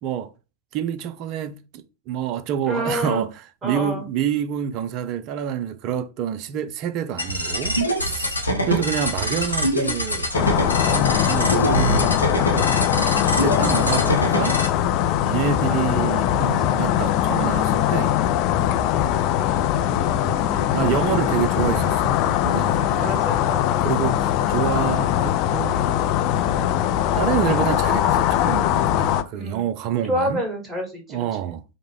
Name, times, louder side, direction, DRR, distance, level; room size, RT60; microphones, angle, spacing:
voice 1, 0.7-3.3 3.6-14.6 15.2-18.2 19.7-23.2 23.8-25.8 26.5-26.7 27.1-30.4 31.1-31.6, right 9 dB, 40° right, 0.4 m, -28 dB
voice 2, 2.7-3.2 3.6-4.0 15.6-16.1 16.6-16.8 22.7-24.1 29.3-29.7 30.1-31.2, equal, 15° right, 1.6 m, -29 dB
sound 1, 7.2-14.7, equal, 85° left, 0.8 m, -24 dB
sound 2, 10.3-29.2, left 11 dB, 40° left, 0.4 m, -21 dB
5.0 x 2.1 x 3.3 m
figure-of-eight pair, 90°, 0 cm